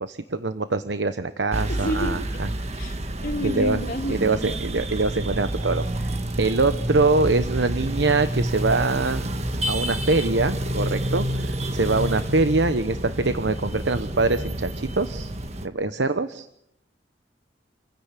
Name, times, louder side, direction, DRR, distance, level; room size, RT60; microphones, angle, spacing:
voice 1, 0.0-2.5 3.4-3.8 4.1-6.1 6.4-9.3 9.7-15.3 15.6-16.5, right 3 dB, 80° right, 10 dB, 1.0 m, -24 dB
sound 1, 1.5-15.7, right 1 dB, 40° right, 1.5 m, -29 dB
voice 2, 1.7-2.2 2.8-4.6, equal, 50° left, 4 dB, 2.8 m, -30 dB
28.0 x 16.0 x 8.3 m, 0.78 s
head